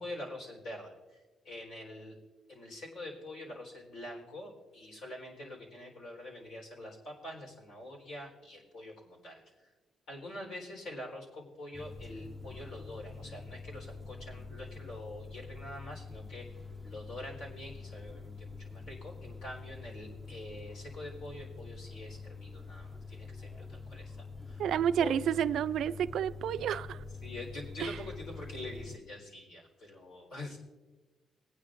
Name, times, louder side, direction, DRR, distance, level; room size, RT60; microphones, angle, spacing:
voice 1, 0.0-2.2 2.5-9.7 10.1-16.5 16.8-24.6 25.0-25.2 27.2-30.6, left 1 dB, 80° left, 4.0 m, -45 dB
sound 1, 11.7-29.0, left 4 dB, ahead, 0.5 m, -46 dB
voice 2, 24.6-27.0 27.8-27.9, right 9 dB, 75° right, 0.3 m, -30 dB
20.0 x 9.8 x 2.5 m
cardioid pair, 90°, 0 cm